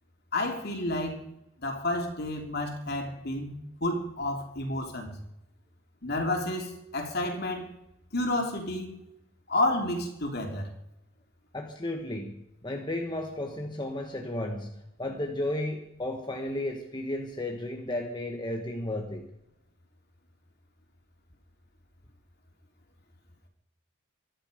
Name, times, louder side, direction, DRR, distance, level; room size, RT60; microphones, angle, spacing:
voice 1, 0.3-1.3 1.6-3.5 3.8-5.2 6.0-7.7 8.1-8.9 9.5-10.7, left 1 dB, 50° left, 3 dB, 3.2 m, -30 dB
voice 2, 11.5-19.3, left 1 dB, 20° left, 2 dB, 1.5 m, -34 dB
24.0 x 11.0 x 5.2 m, 0.84 s
head